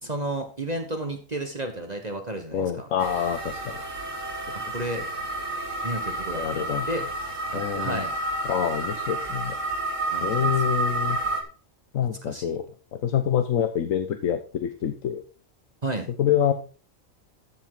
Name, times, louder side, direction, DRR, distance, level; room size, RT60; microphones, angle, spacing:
voice 1, 0.0-2.9 4.5-5.0 5.8-7.0 7.5-8.1 10.1-10.6 12.2-12.6 15.8-16.1, right 1 dB, 30° right, 5 dB, 1.5 m, -32 dB
voice 2, 2.5-3.8 6.3-6.9 7.5-8.0 8.4-9.6 10.2-11.2 11.9-12.6 12.9-15.2 16.2-16.5, left 9 dB, 85° left, 8 dB, 1.3 m, -26 dB
sound 1, 3.0-11.4, right 2 dB, 70° right, 2.2 m, -30 dB
13.0 x 7.4 x 3.9 m, 0.37 s
omnidirectional pair, 1.4 m